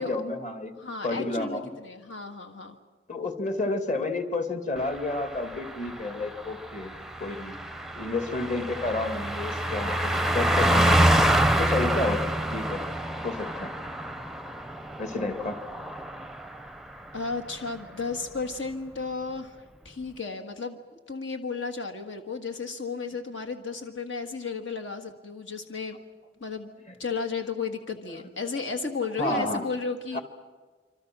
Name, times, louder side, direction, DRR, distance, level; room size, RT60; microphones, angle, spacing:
voice 1, 0.0-0.7 1.0-1.7 3.1-6.9 7.2-7.6 8.0-11.2 11.6-12.2 12.5-12.8 13.2-13.7 15.0-15.6 29.2-29.6 30.1-30.2, left 2 dB, 40° left, 6 dB, 2.4 m, -30 dB
voice 2, 0.8-2.8 17.1-20.8 21.1-26.0 26.4-26.7 27.0-30.2, left 4 dB, 75° left, 6 dB, 1.7 m, -33 dB
Car passing by, 4.9-16.8 17.1-17.3, right 1 dB, ahead, 0.6 m, -27 dB
26.5 x 26.0 x 6.2 m, 1.4 s
head